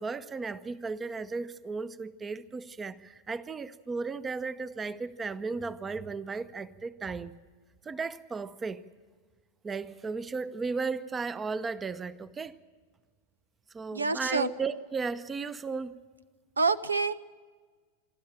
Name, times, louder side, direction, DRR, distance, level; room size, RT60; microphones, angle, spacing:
voice 1, 0.0-7.4 7.8-8.8 9.6-12.6 13.7-15.9, right 4 dB, 15° right, 0.8 m, -35 dB
voice 2, 13.9-14.5 16.6-17.1, right 4 dB, 75° right, 0.6 m, -27 dB
26.5 x 12.5 x 8.9 m
figure-of-eight pair, 90°, 0 cm